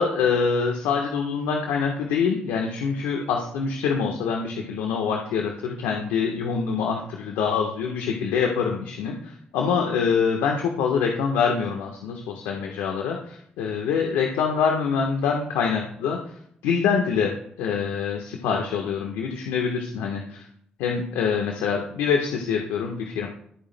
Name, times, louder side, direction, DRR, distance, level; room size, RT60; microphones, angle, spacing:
voice 1, 0.0-16.2 16.6-20.5 20.8-23.3, left 6 dB, 85° left, 1 dB, 1.2 m, -25 dB
23.5 x 8.9 x 2.2 m, 0.69 s
hypercardioid pair, 45°, 4 cm